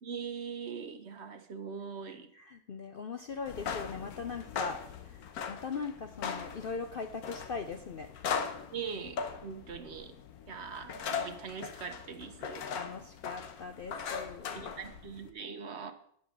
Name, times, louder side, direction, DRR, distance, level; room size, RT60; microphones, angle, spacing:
voice 1, 0.0-2.3 8.7-10.2 10.5-12.6 14.5-15.9, right 6 dB, 50° right, 8 dB, 1.1 m, -41 dB
voice 2, 2.3-8.1 12.7-14.7, left 4 dB, 60° left, 6 dB, 0.6 m, -40 dB
sound 1, 3.4-15.3, left 6 dB, 85° left, 1.4 m, -40 dB
10.0 x 5.5 x 7.1 m, 0.66 s
omnidirectional pair, 1.6 m